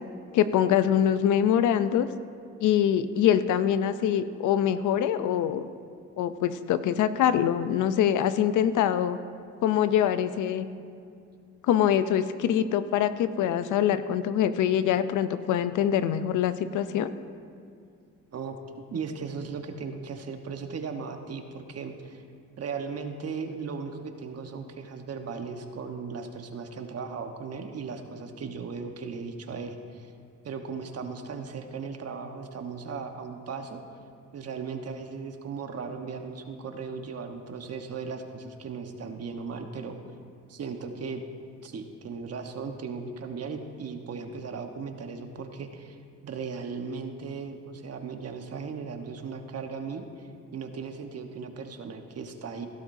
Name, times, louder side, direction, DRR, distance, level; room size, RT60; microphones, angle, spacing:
voice 1, 0.3-2.1 2.6-5.7 6.2-9.2 9.6-10.7 11.6-17.1, left 9 dB, 80° left, 12 dB, 0.6 m, -24 dB
voice 2, 18.3-22.2 22.6-30.1 30.4-33.8 34.3-40.0 40.5-41.2 41.6-46.0 46.2-52.7, right 5 dB, 55° right, 5 dB, 1.2 m, -37 dB
17.0 x 12.5 x 2.7 m, 2.3 s
cardioid pair, 90°, 30 cm